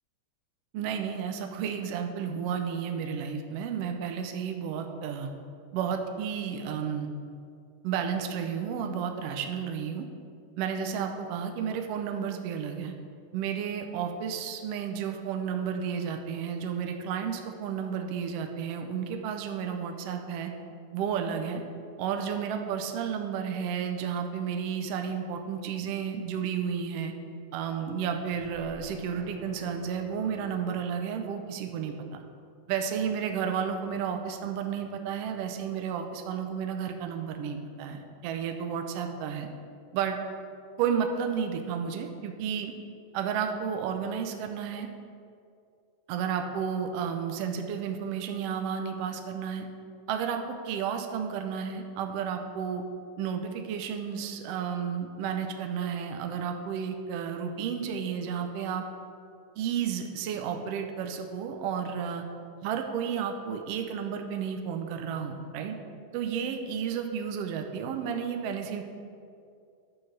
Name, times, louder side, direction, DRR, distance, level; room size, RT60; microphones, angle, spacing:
voice 1, 0.7-5.3 5.7-7.1 7.8-10.1 10.6-12.9 13.3-20.5 20.9-21.6 22.0-27.1 27.5-32.2 32.7-39.5 39.9-40.2 40.8-42.7 43.1-44.9 46.1-49.7 50.1-52.8 53.2-58.8 59.6-62.2 62.6-65.8 66.1-68.8, right 7 dB, 85° right, 4 dB, 1.4 m, -32 dB
sound 1, 28.3-31.6, left 4 dB, 90° left, 2.9 m, -49 dB
11.0 x 3.9 x 6.4 m, 2.4 s
omnidirectional pair, 3.5 m